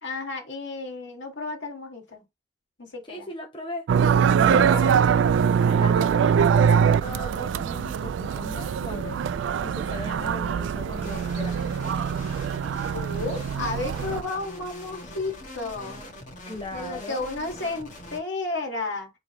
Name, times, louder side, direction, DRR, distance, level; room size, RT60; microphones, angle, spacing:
voice 1, 0.0-2.2 2.8-3.3 4.4-5.1 12.9-16.0 16.7-19.1, left 3 dB, 80° left, 2.0 m, -33 dB
voice 2, 3.1-3.9 4.4-5.0 5.7-9.2 9.6-12.0 16.4-17.3, left 1 dB, 25° left, 0.9 m, -38 dB
sound 1, 3.9-14.2, right 7 dB, 85° right, 0.3 m, -23 dB
sound 2, 10.9-18.2, left 1 dB, 40° left, 1.9 m, -43 dB
4.5 x 3.8 x 3.1 m
head